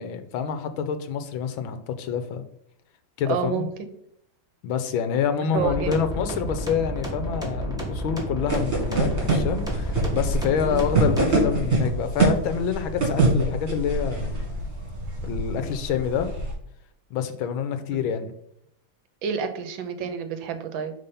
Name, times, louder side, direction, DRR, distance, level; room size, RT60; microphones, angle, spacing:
voice 1, 0.0-2.4 3.2-3.7 4.6-14.3 15.2-16.3 17.1-18.3, left 7 dB, 85° left, 9 dB, 1.5 m, -27 dB
voice 2, 3.2-3.7 5.4-6.1 10.6-10.9 17.9-18.1 19.2-20.9, right 7 dB, 75° right, 8 dB, 1.5 m, -29 dB
sound 1, 5.5-11.5, right 1 dB, ahead, 1.3 m, -31 dB
sound 2, 8.5-16.5, right 2 dB, 35° right, 2.3 m, -25 dB
5.5 x 3.7 x 5.2 m, 0.73 s
omnidirectional pair, 2.2 m